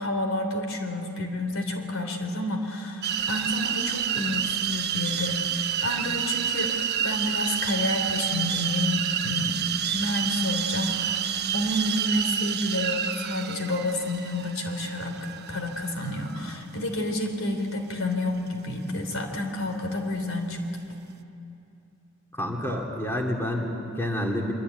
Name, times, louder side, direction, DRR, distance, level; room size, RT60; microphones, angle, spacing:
voice 1, 0.0-6.7 7.0-11.2 11.5-20.6, left 1 dB, 75° left, 4 dB, 3.4 m, -29 dB
sound 1, 3.0-16.6, right 9 dB, 50° right, 1.0 m, -29 dB
voice 2, 22.3-24.5, left 1 dB, 10° left, 0 dB, 2.5 m, -28 dB
24.5 x 24.5 x 9.3 m, 2.8 s
head